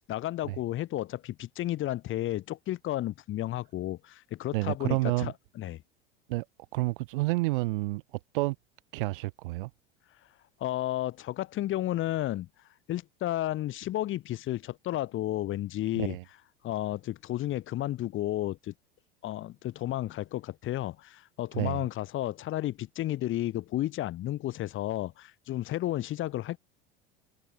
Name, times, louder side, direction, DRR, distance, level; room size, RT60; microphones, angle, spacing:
voice 1, 0.1-5.8 10.6-12.5 12.9-16.2 16.6-18.7 19.2-26.6, left 14 dB, 40° left, 6.2 m, -32 dB
voice 2, 4.5-5.3 6.3-6.4 6.7-8.0 8.3-8.6 8.9-9.7 16.0-16.2 21.5-21.8, right 21 dB, 60° right, 4.5 m, -29 dB
figure-of-eight pair, 80°, 29 cm